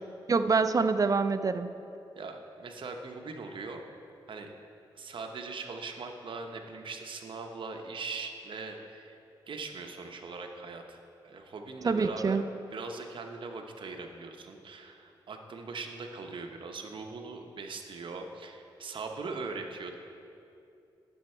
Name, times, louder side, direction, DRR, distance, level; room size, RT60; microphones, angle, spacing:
voice 1, 0.3-1.7 11.8-12.4, right 4 dB, 40° right, 11 dB, 0.4 m, -26 dB
voice 2, 2.1-3.9 4.3-4.5 4.9-9.2 9.5-11.0 11.2-12.4 12.7-20.0, right 4 dB, 65° right, 3 dB, 0.9 m, -40 dB
10.0 x 7.2 x 4.4 m, 2.7 s
cardioid pair, 60°, 9 cm